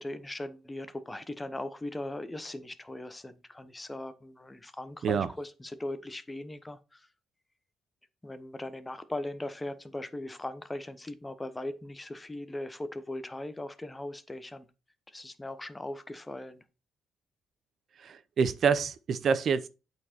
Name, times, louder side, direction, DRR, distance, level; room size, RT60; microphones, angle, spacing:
voice 1, 0.0-7.1 8.2-14.7 15.1-16.6, left 1 dB, 15° left, 1.0 m, -39 dB
voice 2, 18.0-19.7, right 6 dB, 55° right, 0.7 m, -27 dB
8.3 x 4.6 x 4.5 m
cardioid pair, 90°, 0 cm